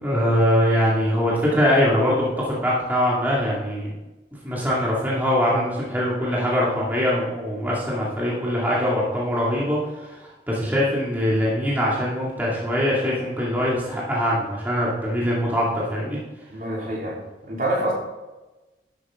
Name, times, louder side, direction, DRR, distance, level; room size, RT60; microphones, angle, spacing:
voice 1, 0.0-3.9 4.4-16.2, equal, 10° right, -6 dB, 2.2 m, -22 dB
voice 2, 16.5-17.2 17.5-17.9, right 1 dB, 50° right, -4 dB, 3.4 m, -26 dB
12.0 x 8.1 x 3.7 m, 1.1 s
head